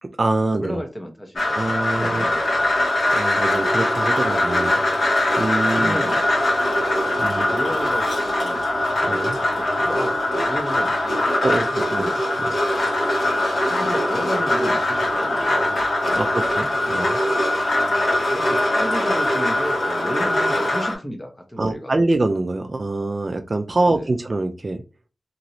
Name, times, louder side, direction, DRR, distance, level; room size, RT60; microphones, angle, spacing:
voice 1, 0.0-0.8 1.5-2.2 3.1-4.8 5.4-6.0 7.2-7.4 9.0-9.4 11.4-12.1 12.4-12.6 16.1-17.2 21.6-24.8, right 2 dB, 40° right, 6 dB, 0.3 m, -24 dB
voice 2, 0.6-2.8 5.6-6.6 7.2-8.6 9.0-11.3 11.9-12.2 13.7-16.6 18.3-21.9 23.9-24.1, equal, 15° left, 4 dB, 0.7 m, -33 dB
sound 1, 1.4-20.9, left 1 dB, 65° left, 1.5 m, -21 dB
3.0 x 2.9 x 2.6 m, 0.30 s
wide cardioid pair, 95°, 0 cm